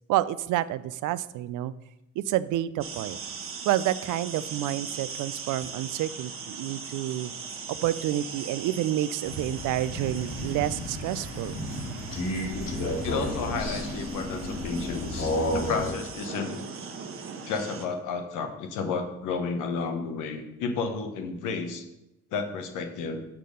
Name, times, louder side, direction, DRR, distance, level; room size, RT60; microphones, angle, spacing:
voice 1, 0.1-1.7 2.2-3.2 3.7-7.3 7.7-11.5, right 13 dB, 85° right, 16 dB, 0.5 m, -29 dB
sound 1, 2.8-17.9, right 5 dB, 45° right, 1.1 m, -40 dB
Crow, 9.2-15.9, left 1 dB, 55° left, 1.9 m, -32 dB
voice 2, 13.0-16.6 17.5-21.8 22.3-23.2, left 5 dB, 90° left, 6 dB, 1.1 m, -32 dB
6.5 x 5.9 x 5.3 m, 0.90 s
cardioid pair, 90°, 30 cm